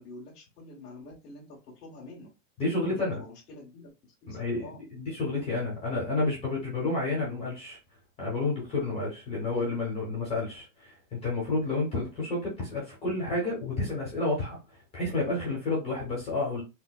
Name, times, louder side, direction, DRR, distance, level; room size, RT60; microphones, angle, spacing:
voice 1, 0.0-2.3 2.9-3.9 4.2-4.8, left 2 dB, 80° left, 1.4 m, -47 dB
voice 2, 2.6-3.2 4.3-4.6 4.9-7.8 8.2-14.6 14.9-16.6, left 2 dB, 15° left, 0.9 m, -30 dB
4.2 x 2.1 x 2.2 m
supercardioid pair, 165°, 46 cm